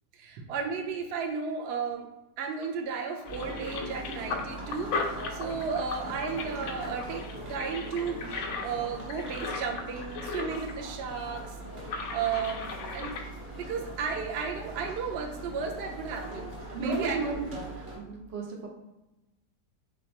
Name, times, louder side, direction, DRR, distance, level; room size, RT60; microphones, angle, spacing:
voice 1, 0.1-2.1 2.4-11.6 12.1-13.1 13.5-17.4, right 5 dB, 70° right, 2 dB, 0.6 m, -34 dB
sound 1, 2.6-2.8 3.2-10.8 11.0-11.1 11.8-13.2, left 4 dB, 80° left, 0.6 m, -37 dB
sound 2, 3.3-18.0, right 1 dB, 40° right, 1.3 m, -41 dB
voice 2, 16.7-18.7, right 4 dB, 90° right, 0 dB, 1.5 m, -33 dB
3.6 x 3.3 x 4.1 m, 0.97 s
omnidirectional pair, 1.9 m